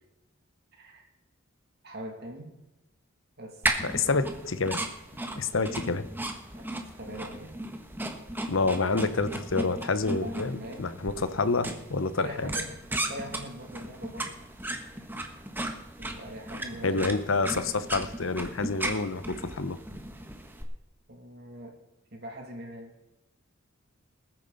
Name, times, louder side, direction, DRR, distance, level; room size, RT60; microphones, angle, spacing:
voice 1, 0.7-1.1 1.8-2.6 3.4-4.1 6.5-6.6 7.0-7.6 10.2-11.0 12.1-14.4 16.0-17.1 18.3-18.4 21.1-21.8 22.1-22.9, right 1 dB, 55° right, 2 dB, 2.6 m, -42 dB
sound 1, 3.6-20.6, right 1 dB, 10° right, 1.3 m, -36 dB
voice 2, 3.8-4.8 5.4-6.1 8.5-12.5 16.8-19.8, left 3 dB, 75° left, 12 dB, 0.9 m, -28 dB
20.0 x 9.0 x 4.1 m, 0.98 s
head